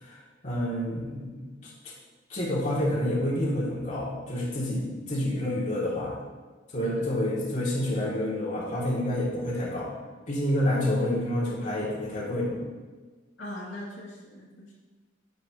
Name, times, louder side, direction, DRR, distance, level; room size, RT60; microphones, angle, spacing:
voice 1, 0.0-1.5 2.3-6.2 6.7-9.9 10.3-12.6, left 1 dB, 40° left, -6 dB, 2.7 m, -28 dB
voice 2, 13.4-14.7, left 1 dB, 80° left, -6 dB, 2.7 m, -40 dB
11.5 x 10.5 x 3.1 m, 1.3 s
head